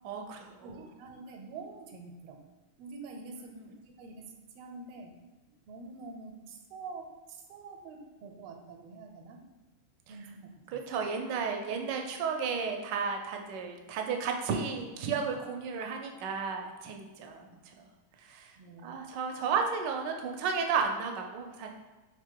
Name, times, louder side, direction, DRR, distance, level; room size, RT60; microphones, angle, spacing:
voice 1, 0.0-0.9 3.4-3.7 10.1-10.2 10.7-17.5 17.8-17.9 18.2-18.5 18.8-21.7, right 5 dB, 75° right, 3 dB, 1.0 m, -33 dB
voice 2, 0.6-2.4 2.8-4.2 4.5-5.1 5.7-9.4 10.1-10.5 17.5-17.6 18.6-19.0, right 3 dB, 90° right, 3 dB, 1.5 m, -46 dB
3.7 x 3.4 x 3.6 m, 1.2 s
omnidirectional pair, 2.3 m